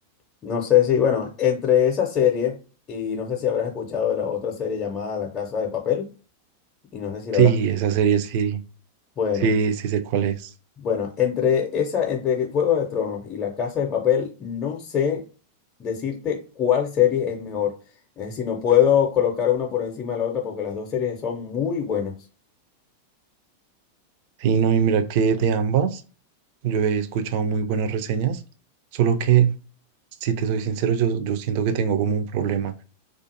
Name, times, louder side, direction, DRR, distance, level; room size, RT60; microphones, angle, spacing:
voice 1, 0.4-2.6 2.9-6.1 6.9-7.5 9.2-9.5 10.8-15.2 15.8-17.7 18.2-22.1, left 9 dB, 25° left, 0.6 m, -23 dB
voice 2, 7.3-8.6 9.4-10.5 24.4-26.0 26.6-28.4 28.9-29.5 30.2-32.8, right 7 dB, 45° right, 0.4 m, -22 dB
2.4 x 2.4 x 2.7 m
figure-of-eight pair, 90°, 0 cm